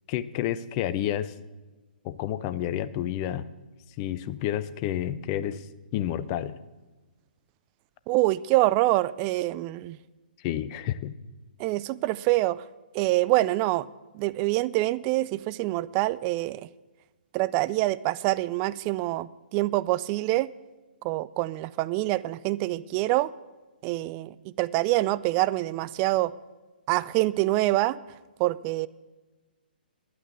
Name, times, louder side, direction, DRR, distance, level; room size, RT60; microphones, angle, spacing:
voice 1, 0.1-1.3 2.0-3.5 4.0-5.7 5.9-6.6 10.4-11.1, left 11 dB, 30° left, 15 dB, 0.5 m, -30 dB
voice 2, 8.1-10.0 11.6-12.6 12.9-13.9 14.1-16.7 17.3-20.5 21.0-23.3 23.8-26.3 26.9-28.0 28.4-28.9, right 18 dB, 25° right, 18 dB, 0.3 m, -25 dB
11.0 x 9.2 x 6.7 m, 1.2 s
figure-of-eight pair, 130°, 5 cm